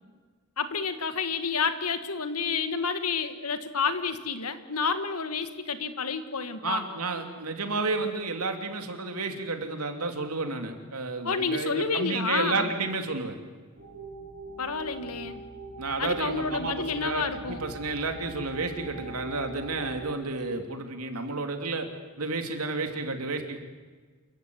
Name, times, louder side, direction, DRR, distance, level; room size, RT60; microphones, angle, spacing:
voice 1, 0.6-6.9 11.2-12.7 14.6-15.4 16.0-17.6, left 5 dB, 85° left, 10 dB, 1.9 m, -29 dB
voice 2, 6.6-13.4 15.8-21.9 22.2-23.6, right 3 dB, 85° right, 5 dB, 3.1 m, -31 dB
sound 1, 13.8-20.1, right 3 dB, 50° right, 5.8 m, -43 dB
27.5 x 15.5 x 9.4 m, 1.4 s
head